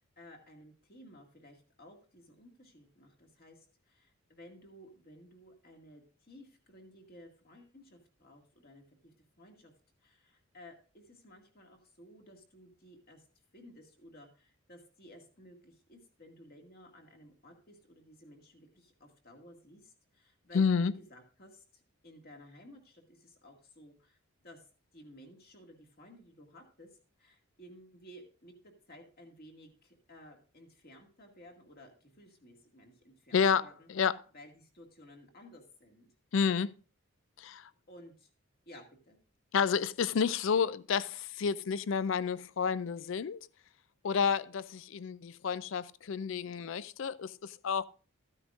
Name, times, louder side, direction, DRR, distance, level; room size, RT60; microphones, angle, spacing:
voice 1, 0.0-9.7 10.0-13.3 13.5-24.2 24.4-24.7 24.9-33.9 34.3-36.1 37.9-38.3 38.7-39.2, equal, 45° left, 2.0 m, -56 dB
voice 2, 20.5-20.9 33.3-34.2 36.3-36.7 37.4-37.7 39.5-43.4 44.0-47.8, left 6 dB, 60° left, 0.4 m, -30 dB
14.0 x 9.7 x 2.5 m
head